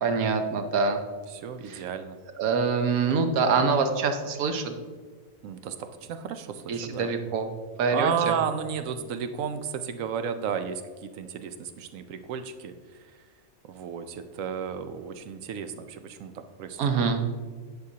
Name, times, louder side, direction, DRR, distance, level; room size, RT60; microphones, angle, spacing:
voice 1, 0.0-1.0 1.6-1.8 2.4-4.7 6.7-7.5 7.8-8.3 16.8-17.3, right 5 dB, 90° right, 6 dB, 1.2 m, -25 dB
voice 2, 1.3-2.2 5.4-7.1 7.9-12.7 13.7-17.1, right 7 dB, 75° right, 9 dB, 0.9 m, -33 dB
10.0 x 6.3 x 2.8 m, 1.5 s
omnidirectional pair, 1.5 m